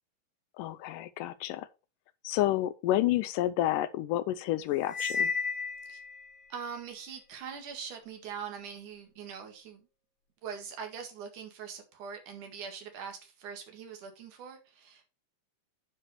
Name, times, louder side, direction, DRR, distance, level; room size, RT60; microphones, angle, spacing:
voice 1, 0.6-1.7 2.2-5.3, left 14 dB, 80° left, 2.1 m, -29 dB
Cymbal, 4.9-6.3, left 5 dB, 60° left, 3.7 m, -32 dB
voice 2, 6.5-9.9 10.4-15.1, right 7 dB, 65° right, 3.3 m, -42 dB
9.8 x 4.9 x 5.0 m
omnidirectional pair, 3.9 m